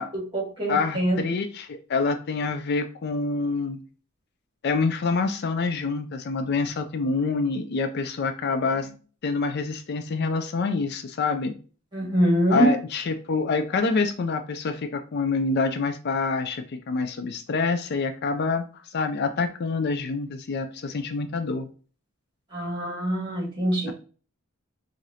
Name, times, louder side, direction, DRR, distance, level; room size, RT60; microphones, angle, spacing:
voice 1, 0.1-1.2 11.9-12.7 22.5-23.9, right 1 dB, 25° right, -3 dB, 1.9 m, -24 dB
voice 2, 0.7-3.8 4.6-8.9 9.2-11.5 12.5-21.7, left 4 dB, 55° left, 8 dB, 0.4 m, -26 dB
4.8 x 2.5 x 2.7 m, 0.38 s
head